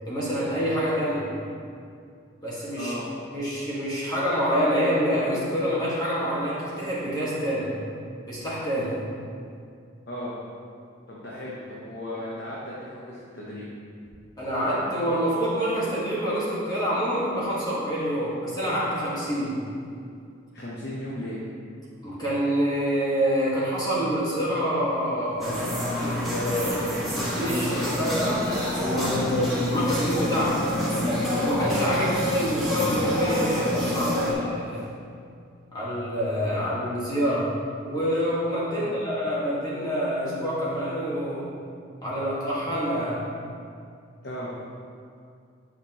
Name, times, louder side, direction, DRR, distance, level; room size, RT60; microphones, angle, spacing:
voice 1, 0.1-1.3 2.4-2.9 3.3-7.7 8.2-9.0 14.4-19.5 22.0-25.7 25.9-28.4 28.7-30.6 31.3-34.8 35.7-37.5 37.8-41.5 42.0-43.2, equal, 20° left, -8 dB, 1.6 m, -27 dB
voice 2, 11.1-13.6 20.5-21.4 31.9-32.2 38.7-38.9 44.2-44.5, left 1 dB, 55° left, -6 dB, 1.0 m, -36 dB
sound 1, 25.4-34.3, left 1 dB, ahead, 1.5 m, -27 dB
sound 2, 33.3-38.2 38.6-38.7, right 1 dB, 90° right, 1.2 m, -41 dB
9.7 x 5.9 x 2.9 m, 2.3 s
head